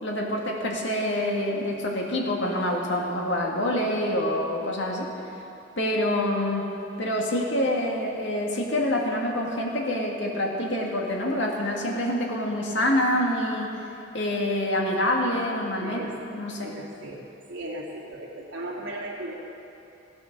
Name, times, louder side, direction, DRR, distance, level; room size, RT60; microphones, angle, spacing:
voice 1, 0.0-5.1 5.8-6.7 7.0-13.7 14.1-16.7, left 1 dB, 70° left, -1 dB, 2.1 m, -26 dB
voice 2, 15.8-16.1 16.6-17.2 17.5-19.4, right 1 dB, 85° right, -3 dB, 2.7 m, -36 dB
15.5 x 9.3 x 6.8 m, 2.8 s
head